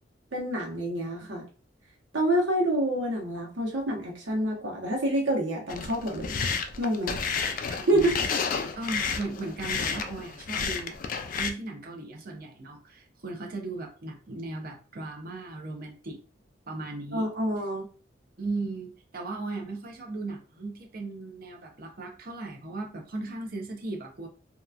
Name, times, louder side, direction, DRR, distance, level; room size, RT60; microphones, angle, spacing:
voice 1, 0.3-1.4 2.1-6.4 6.8-7.2 7.9-8.0 17.1-17.9, right 1 dB, 90° right, -2 dB, 1.0 m, -27 dB
sound 1, 5.7-11.5, left 5 dB, 45° left, 0.3 m, -31 dB
voice 2, 7.8-8.3 8.8-11.0 11.4-16.2 16.7-17.3 18.4-24.3, right 2 dB, 50° right, 2 dB, 0.7 m, -37 dB
2.8 x 2.3 x 2.4 m, 0.38 s
head